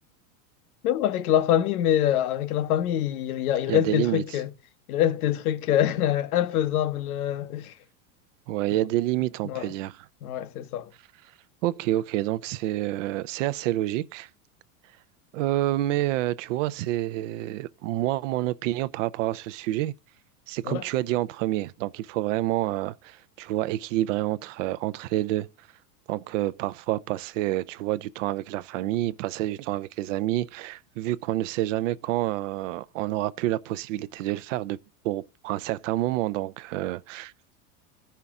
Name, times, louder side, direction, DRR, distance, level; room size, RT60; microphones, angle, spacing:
voice 1, 0.8-4.5 4.9-7.7 9.4-9.7 10.2-10.9 20.6-20.8, left 11 dB, 70° left, 1.0 m, -25 dB
voice 2, 3.7-4.2 8.5-9.9 11.6-14.3 15.3-19.9 20.5-25.5 26.1-34.8 35.0-37.3, right 15 dB, 55° right, 0.5 m, -28 dB
14.5 x 5.7 x 3.6 m
supercardioid pair, 155°, 46 cm